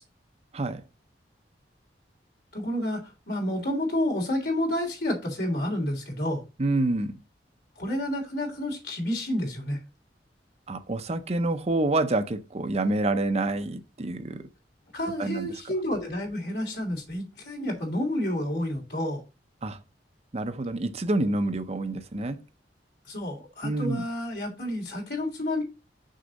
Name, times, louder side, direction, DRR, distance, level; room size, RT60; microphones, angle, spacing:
voice 1, 2.5-6.4 7.8-9.8 14.9-19.2 23.0-25.6, left 1 dB, 65° left, 3.4 m, -30 dB
voice 2, 6.6-7.2 10.7-14.4 15.2-15.5 19.6-19.8 20.3-22.4 23.6-24.0, right 2 dB, 35° right, 0.7 m, -27 dB
6.5 x 6.2 x 4.0 m
head